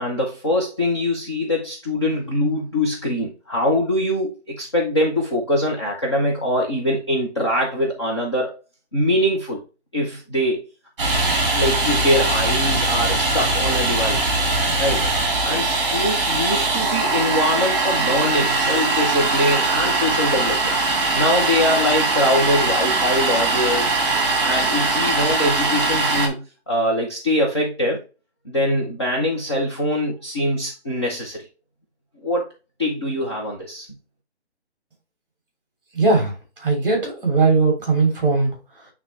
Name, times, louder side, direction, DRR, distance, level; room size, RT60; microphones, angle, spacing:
voice 1, 0.0-8.6 8.9-9.6 9.9-10.6 11.5-14.3 14.8-15.0 15.4-20.8 21.1-24.0 24.4-28.0 28.5-31.5 32.2-32.5 32.8-33.9, left 1 dB, 25° left, -2 dB, 0.8 m, -23 dB
Domestic sounds home sounds, 11.0-26.3, right 3 dB, 25° right, 1.8 m, -21 dB
voice 2, 35.9-36.3 36.6-38.5, right 3 dB, 5° right, 0 dB, 2.7 m, -18 dB
8.8 x 3.6 x 3.2 m, 0.31 s
hypercardioid pair, 170°, 34 cm